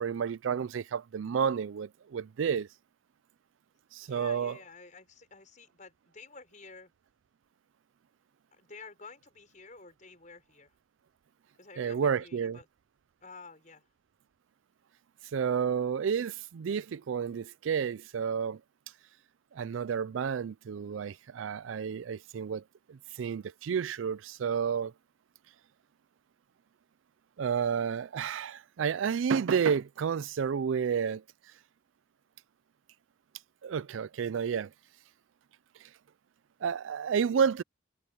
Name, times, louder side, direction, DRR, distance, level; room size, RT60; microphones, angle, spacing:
voice 1, 0.0-2.7 3.9-4.6 11.8-12.6 15.3-18.6 19.5-22.6 22.9-24.9 27.4-31.2 33.6-34.7 36.6-37.6, right 7 dB, 90° right, 0.4 m, -30 dB
voice 2, 4.0-6.9 8.5-10.7 11.6-12.7 13.2-13.9, left 4 dB, 40° left, 5.9 m, -51 dB
head